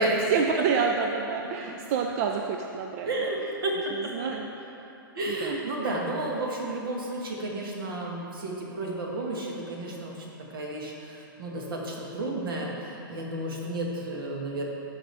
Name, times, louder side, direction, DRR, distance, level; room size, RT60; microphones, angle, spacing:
voice 1, 0.0-3.3 3.9-4.9 5.3-5.6, right 6 dB, 40° right, 2 dB, 0.4 m, -29 dB
voice 2, 3.1-4.1 5.1-14.6, right 1 dB, 70° right, -2 dB, 1.8 m, -32 dB
12.5 x 5.0 x 3.4 m, 2.9 s
hypercardioid pair, 145°, 12 cm